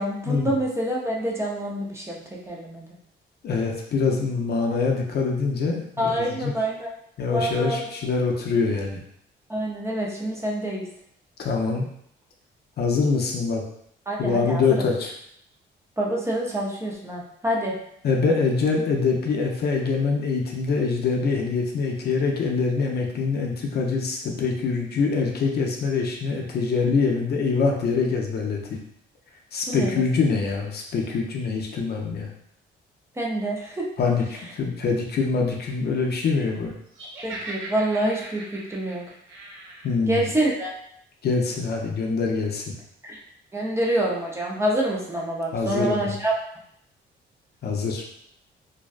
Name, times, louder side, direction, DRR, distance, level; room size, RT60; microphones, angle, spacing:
voice 1, 0.0-2.9 6.0-6.9 7.3-7.9 9.5-10.8 14.1-14.8 16.0-17.8 29.7-30.0 33.2-33.9 37.2-39.0 40.1-40.7 43.0-43.2 43.5-46.3, right 1 dB, 15° right, -3 dB, 0.6 m, -26 dB
voice 2, 3.4-6.5 7.2-9.0 11.4-11.8 12.8-13.6 14.2-15.1 18.0-28.8 29.5-32.3 34.0-36.7 39.8-40.2 41.2-42.6 45.5-46.1 47.6-48.0, left 4 dB, 55° left, 0 dB, 0.5 m, -24 dB
Laughter, 36.9-39.9, right 2 dB, 80° right, 0.7 m, -39 dB
2.6 x 2.1 x 2.4 m, 0.71 s
cardioid pair, 90°, 20 cm